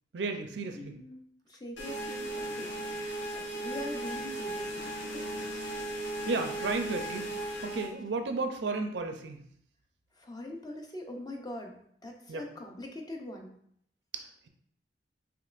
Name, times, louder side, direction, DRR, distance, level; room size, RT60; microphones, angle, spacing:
voice 1, 0.1-1.0 6.3-7.3 7.6-9.4 12.3-12.4 14.1-14.5, right 3 dB, 70° right, 5 dB, 0.5 m, -33 dB
voice 2, 0.8-1.2 1.5-5.2 10.2-13.5, left 1 dB, 20° left, 2 dB, 0.5 m, -43 dB
sound 1, 1.8-7.9, right 1 dB, 85° left, 1.0 m, -36 dB
5.2 x 3.0 x 2.4 m, 0.67 s
head